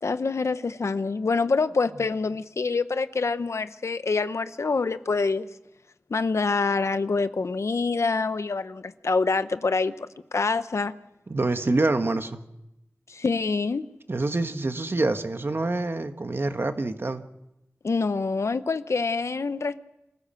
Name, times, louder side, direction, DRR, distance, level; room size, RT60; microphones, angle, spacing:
voice 1, 0.0-5.5 6.1-10.1 10.3-10.9 13.1-13.9 17.8-19.8, left 4 dB, 80° left, 0.9 m, -26 dB
voice 2, 11.3-12.4 14.1-17.2, right 2 dB, 55° right, 1.5 m, -26 dB
26.5 x 15.0 x 7.7 m
wide cardioid pair, 65°, 5 cm